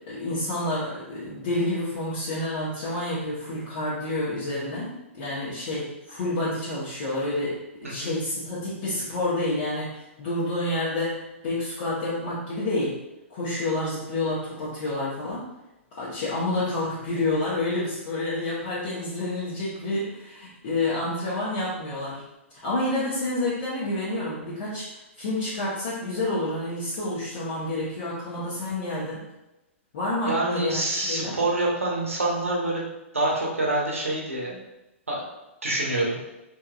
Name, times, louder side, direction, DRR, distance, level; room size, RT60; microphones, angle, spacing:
voice 1, 0.0-13.0 13.3-15.5 16.0-22.2 22.6-29.3 29.9-31.4, left 2 dB, 50° left, -9 dB, 1.0 m, -29 dB
voice 2, 30.3-32.9 33.1-34.6 35.1-35.2 35.6-36.2, right 2 dB, 75° right, -2 dB, 1.0 m, -26 dB
3.6 x 3.0 x 2.3 m, 0.98 s
figure-of-eight pair, 110°, 7 cm